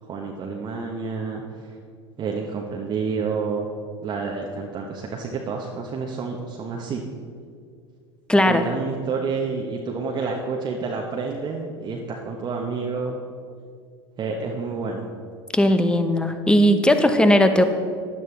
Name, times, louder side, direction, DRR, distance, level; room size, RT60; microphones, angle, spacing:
voice 1, 0.0-1.8 2.2-3.7 4.0-7.0 8.4-13.2 14.2-15.1, right 4 dB, 30° right, 0 dB, 1.1 m, -29 dB
voice 2, 8.3-8.6 15.5-17.6, equal, 5° left, 8 dB, 0.9 m, -17 dB
15.5 x 11.0 x 3.4 m, 2.2 s
figure-of-eight pair, 75°, 14 cm